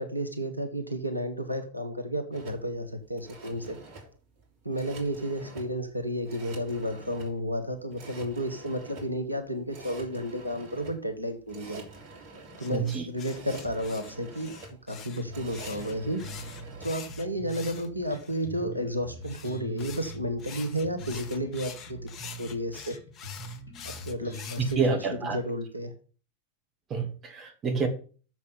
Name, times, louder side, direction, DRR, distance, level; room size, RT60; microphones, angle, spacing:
voice 1, 0.0-3.8 4.6-11.8 12.6-14.5 14.9-16.2 16.8-22.0 22.4-23.0 23.8-25.0 25.3-25.9, equal, 85° right, 7 dB, 1.2 m, -32 dB
sound 1, 2.3-16.9, right 3 dB, 40° right, 2.8 m, -47 dB
sound 2, 12.6-18.4 19.2-24.8, left 7 dB, 35° left, 1.1 m, -45 dB
voice 2, 12.7-13.0 24.8-25.4 26.9-27.9, right 5 dB, 25° right, 5 dB, 2.0 m, -28 dB
Bass guitar, 15.3-24.9, right 1 dB, 75° left, 3.3 m, -43 dB
6.8 x 6.0 x 6.9 m, 0.39 s
figure-of-eight pair, 90°, 0 cm